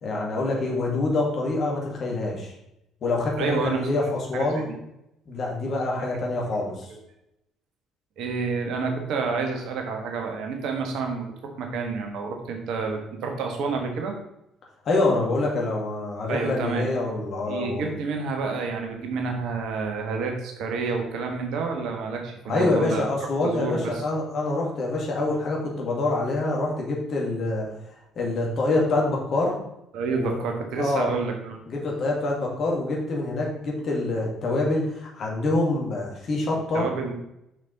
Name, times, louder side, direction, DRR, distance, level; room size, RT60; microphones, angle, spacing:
voice 1, 0.0-2.5 3.0-4.7 5.3-6.9 14.8-17.9 22.5-27.7 28.1-29.5 30.2-30.4 30.8-31.1 31.7-36.9, left 2 dB, 45° left, -2 dB, 2.3 m, -26 dB
voice 2, 3.4-3.8 4.3-4.6 8.2-14.2 16.3-16.8 17.5-23.0 23.4-24.0 29.9-31.6 36.7-37.1, right 4 dB, 55° right, 3 dB, 1.3 m, -29 dB
6.7 x 6.1 x 4.1 m, 0.82 s
figure-of-eight pair, 50°, 0 cm